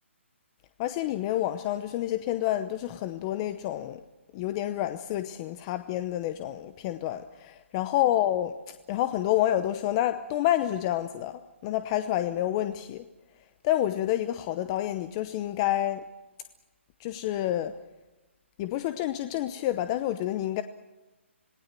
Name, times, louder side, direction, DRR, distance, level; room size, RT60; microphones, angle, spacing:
voice 1, 0.8-4.0 4.3-13.0 13.6-16.0 17.0-17.7 18.6-20.6, left 13 dB, 25° left, 10 dB, 0.8 m, -28 dB
26.5 x 19.5 x 7.6 m, 1.1 s
hypercardioid pair, 160°, 7 cm